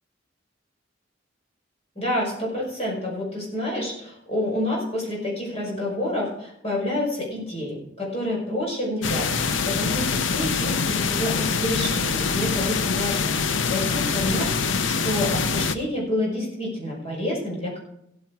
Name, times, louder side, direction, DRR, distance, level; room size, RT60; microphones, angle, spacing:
voice 1, 2.0-13.3 13.7-17.8, left 1 dB, 35° left, -4 dB, 5.8 m, -28 dB
sound 1, 9.0-15.7, left 5 dB, 80° left, 0.7 m, -24 dB
16.5 x 8.9 x 4.7 m, 0.79 s
head